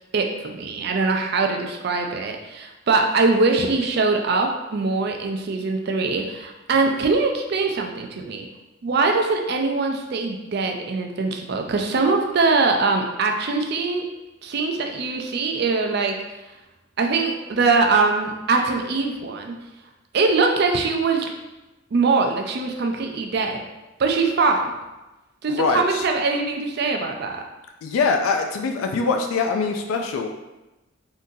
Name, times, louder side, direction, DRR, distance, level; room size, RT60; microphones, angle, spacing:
voice 1, 0.1-8.5 8.8-14.0 14.4-16.1 17.0-19.6 20.1-21.3 21.9-23.6 24.0-24.7 25.4-27.4, right 3 dB, 50° right, 3 dB, 0.4 m, -22 dB
voice 2, 25.5-26.0 27.8-30.3, left 4 dB, 85° left, 4 dB, 0.3 m, -23 dB
3.7 x 2.7 x 2.6 m, 1.0 s
head